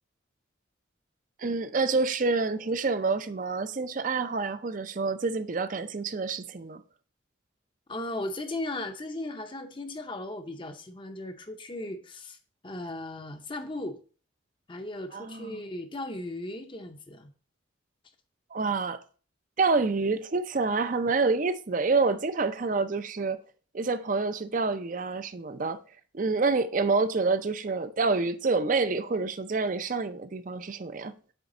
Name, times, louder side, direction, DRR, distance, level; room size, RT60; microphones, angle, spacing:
voice 1, 1.4-6.8 15.1-15.6 18.5-19.0 19.6-23.4 23.7-25.8 26.1-31.1, right 4 dB, 40° right, 0.5 m, -27 dB
voice 2, 7.9-12.4 12.6-14.0 14.7-17.3, left 1 dB, 25° left, 0.6 m, -37 dB
8.0 x 3.5 x 4.9 m
head